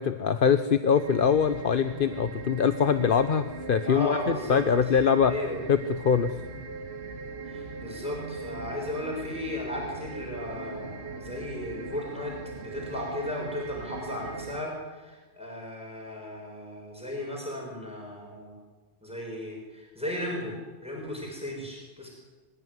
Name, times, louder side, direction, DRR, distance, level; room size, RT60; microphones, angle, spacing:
voice 1, 0.0-5.3 5.7-6.4, left 7 dB, 55° left, 10 dB, 1.0 m, -23 dB
sound 1, 0.9-14.6, right 4 dB, 70° right, 1.9 m, -40 dB
voice 2, 3.8-4.6 5.2-5.6 7.5-18.5 19.0-20.6 20.8-22.1, left 1 dB, 5° right, -2 dB, 6.2 m, -35 dB
25.5 x 15.5 x 9.6 m, 1.3 s
omnidirectional pair, 1.1 m